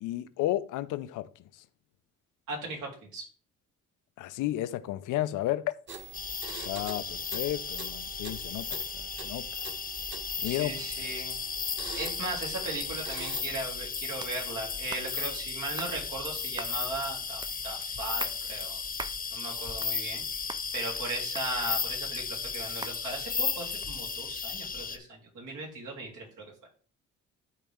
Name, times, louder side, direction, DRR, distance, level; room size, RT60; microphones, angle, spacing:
voice 1, 0.0-1.3 4.2-5.7 6.6-8.7 8.9-9.4 10.4-10.7, left 14 dB, 90° left, 0.6 m, -32 dB
voice 2, 2.5-3.3 10.4-11.4 12.0-18.8 19.3-20.2 20.7-26.4, right 2 dB, 80° right, 3.5 m, -38 dB
sound 1, 5.9-13.4, right 4 dB, 40° right, 1.7 m, -45 dB
sound 2, 6.1-25.0, left 5 dB, 30° left, 0.9 m, -35 dB
sound 3, 14.2-14.4 14.9-15.1 15.8-16.0 16.6-16.8 17.4-17.5 18.0-18.4 19.0-19.2 19.6-20.2 20.5-20.6 21.4-21.9 22.8-23.0, right 3 dB, 15° right, 0.4 m, -41 dB
12.0 x 4.2 x 3.6 m
cardioid pair, 90°, 30 cm